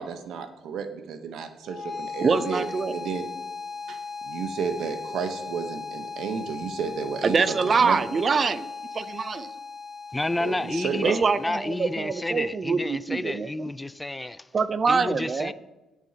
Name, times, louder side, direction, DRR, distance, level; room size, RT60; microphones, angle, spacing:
voice 1, 0.0-3.3 3.9-4.0 4.2-8.0 10.4-11.2, right 6 dB, 80° right, 0.9 m, -32 dB
sound 1, 1.6-12.6, left 4 dB, 20° right, 3.2 m, -38 dB
voice 2, 2.2-2.9 7.2-8.7 8.9-9.5 11.0-13.7 14.5-15.5, right 5 dB, 40° right, 0.5 m, -24 dB
voice 3, 10.1-14.5 14.9-15.5, left 2 dB, 15° left, 0.3 m, -30 dB
18.0 x 6.1 x 2.8 m
cardioid pair, 90°, 0 cm